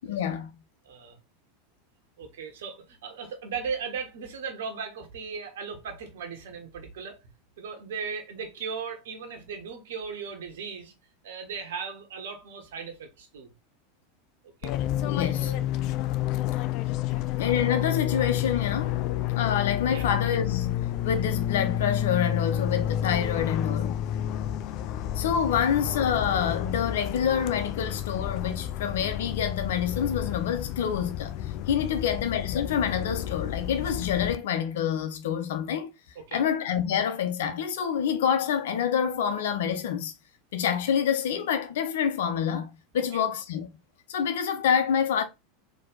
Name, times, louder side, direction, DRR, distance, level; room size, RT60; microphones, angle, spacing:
voice 1, 0.0-0.5 15.0-15.5 17.4-19.0 19.4-24.0 25.2-31.3 31.7-35.9 36.3-40.1 40.5-43.7 44.1-45.2, left 8 dB, 65° left, 0.8 m, -27 dB
voice 2, 0.8-1.2 2.2-7.2 7.6-10.9 11.2-13.5 14.6-14.7 15.2-15.7 17.1-17.3 19.9-20.1 36.1-36.4 43.1-43.2, right 5 dB, 65° right, 1.4 m, -37 dB
Fixed-wing aircraft airplane, 14.6-34.4, left 12 dB, 50° left, 0.4 m, -30 dB
4.3 x 3.0 x 3.9 m
figure-of-eight pair, 85°, 0 cm